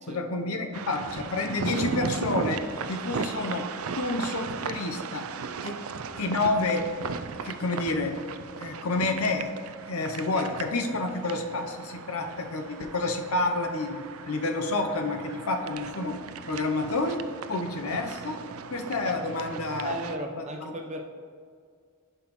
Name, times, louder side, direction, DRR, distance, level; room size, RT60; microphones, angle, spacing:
voice 1, 0.1-2.6 2.9-3.7 4.0-5.3 5.6-5.8 6.2-6.9 7.4-8.2 8.6-9.5 9.9-16.2 16.5-17.2 17.5-18.4 18.7-19.9 20.4-20.5, left 2 dB, 80° left, 5 dB, 0.7 m, -29 dB
sound 1, 0.7-20.2, right 5 dB, 75° right, 0.4 m, -37 dB
voice 2, 19.8-21.0, right 1 dB, 35° right, 3 dB, 0.8 m, -36 dB
11.0 x 5.6 x 3.0 m, 2.1 s
head